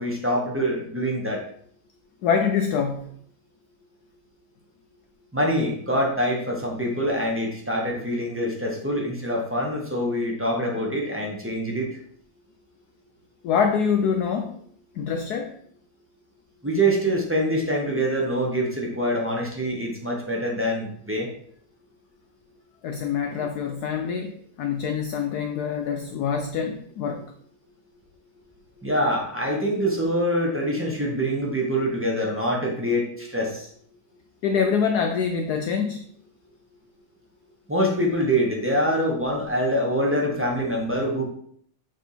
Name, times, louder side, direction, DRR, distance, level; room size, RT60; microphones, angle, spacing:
voice 1, 0.0-1.4 5.3-11.9 16.6-21.3 28.8-33.7 37.7-41.3, equal, 10° right, -2 dB, 0.6 m, -25 dB
voice 2, 2.2-3.1 13.4-14.6 14.9-15.6 22.8-27.3 34.4-36.0, left 6 dB, 85° left, 5 dB, 0.8 m, -25 dB
6.7 x 3.7 x 4.1 m, 0.63 s
omnidirectional pair, 2.2 m